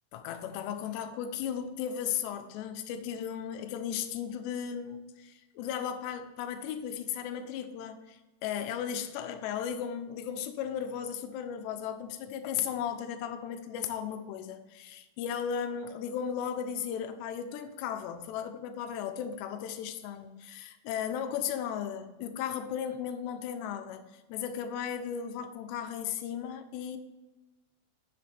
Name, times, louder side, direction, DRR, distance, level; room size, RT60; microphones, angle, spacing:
voice 1, 0.1-27.0, left 8 dB, 80° left, 8 dB, 2.8 m, -36 dB
10.0 x 7.4 x 3.4 m, 1.1 s
omnidirectional pair, 5.3 m